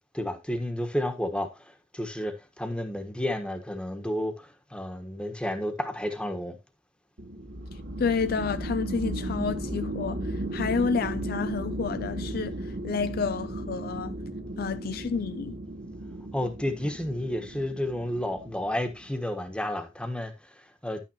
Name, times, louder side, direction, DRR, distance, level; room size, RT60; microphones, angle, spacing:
voice 1, 0.1-6.6 16.3-21.0, left 1 dB, 5° left, 1.3 m, -31 dB
sound 1, 7.2-19.3, right 1 dB, 65° right, 2.1 m, -35 dB
voice 2, 8.0-10.2 10.5-12.5 12.8-14.2 14.6-15.6, left 5 dB, 55° left, 0.4 m, -29 dB
11.0 x 8.9 x 2.9 m
head